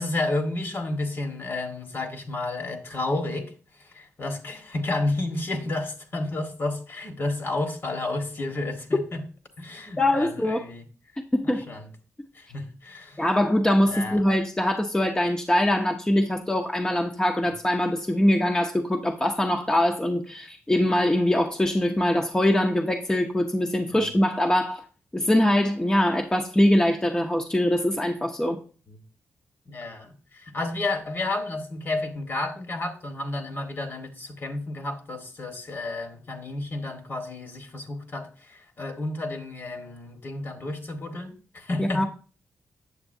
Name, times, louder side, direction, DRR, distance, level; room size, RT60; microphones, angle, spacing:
voice 1, 0.0-9.2 9.6-10.8 11.4-11.9 12.3-13.2 13.8-14.2 23.9-24.1 28.9-29.0 29.6-42.1, left 2 dB, 50° left, 1.5 m, -31 dB
voice 2, 10.0-10.6 11.3-11.7 13.2-24.8 25.1-28.6 41.8-42.0, left 1 dB, 15° left, 0.7 m, -23 dB
8.1 x 6.8 x 2.6 m
cardioid pair, 80°, 5 cm